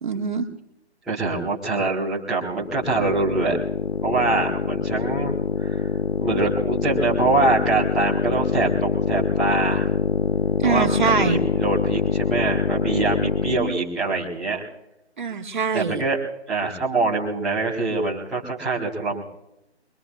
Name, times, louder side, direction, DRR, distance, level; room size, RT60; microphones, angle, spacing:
voice 1, 0.0-0.4 10.6-11.4 15.2-16.0, right 5 dB, 45° right, 4 dB, 1.7 m, -23 dB
voice 2, 1.1-3.6 4.0-5.8 6.2-9.9 10.6-14.6 15.7-16.2 16.5-19.2, right 3 dB, ahead, -12 dB, 1.1 m, -24 dB
sound 1, 2.6-13.8, left 6 dB, 65° left, 0.8 m, -24 dB
23.0 x 23.0 x 2.4 m, 0.86 s
figure-of-eight pair, 160°, 33 cm